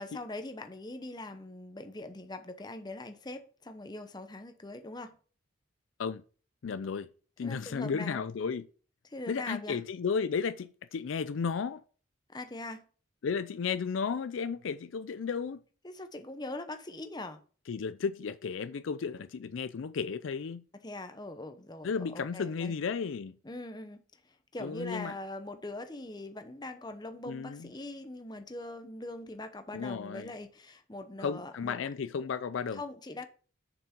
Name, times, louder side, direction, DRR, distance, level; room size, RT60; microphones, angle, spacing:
voice 1, 0.0-5.2 7.4-8.2 9.0-9.8 12.3-12.8 15.8-17.4 20.8-22.7 23.4-24.0 24.5-31.8 32.7-33.3, left 2 dB, 20° left, 0.8 m, -42 dB
voice 2, 6.6-7.1 7.4-8.6 9.3-11.8 13.2-15.6 17.7-20.6 21.8-23.4 24.6-25.1 27.3-27.7 29.7-30.3 31.2-32.8, left 5 dB, 75° left, 0.4 m, -34 dB
6.8 x 6.0 x 4.4 m
head